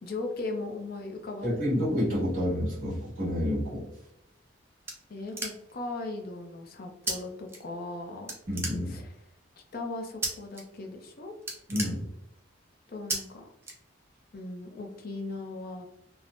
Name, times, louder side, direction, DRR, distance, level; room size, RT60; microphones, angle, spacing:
voice 1, 0.0-1.7 5.1-8.4 8.9-9.1 9.6-11.3 12.9-13.5 14.3-15.9, left 2 dB, 50° left, 3 dB, 0.5 m, -38 dB
voice 2, 1.4-3.8 8.5-9.0 11.7-12.1, left 1 dB, 40° right, -9 dB, 1.4 m, -29 dB
sound 1, 4.3-5.9 7.1-7.2 7.5-8.0 8.3-9.2 10.2-10.6 11.0-11.1 11.4-12.5 13.1-13.2 13.6-14.3, right 2 dB, 15° right, 0.4 m, -35 dB
3.4 x 2.0 x 2.4 m, 0.83 s
head